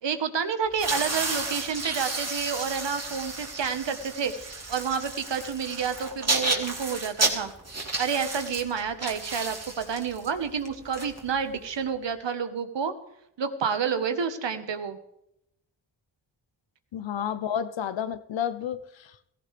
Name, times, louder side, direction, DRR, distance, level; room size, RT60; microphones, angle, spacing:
voice 1, 0.0-7.5 8.0-12.9 13.4-15.0, right 6 dB, 70° right, 9 dB, 1.5 m, -29 dB
sound 1, 0.7-11.7, right 2 dB, 35° right, 2.8 m, -32 dB
voice 2, 16.9-19.3, left 9 dB, 75° left, 13 dB, 0.9 m, -31 dB
16.5 x 15.0 x 3.5 m, 0.80 s
cardioid pair, 45°, 46 cm